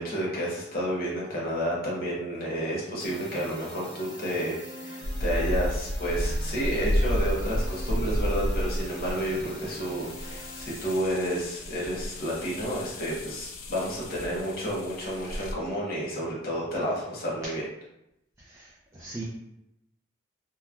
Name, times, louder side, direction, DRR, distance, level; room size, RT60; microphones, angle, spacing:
voice 1, 0.0-17.6, equal, 45° left, -5 dB, 0.8 m, -31 dB
sound 1, 3.0-11.0, left 1 dB, 20° left, 0.9 m, -43 dB
sound 2, 5.0-15.5, equal, 75° left, 0.4 m, -31 dB
voice 2, 18.4-19.2, right 3 dB, 15° right, -6 dB, 0.4 m, -40 dB
2.9 x 2.2 x 2.4 m, 0.86 s
head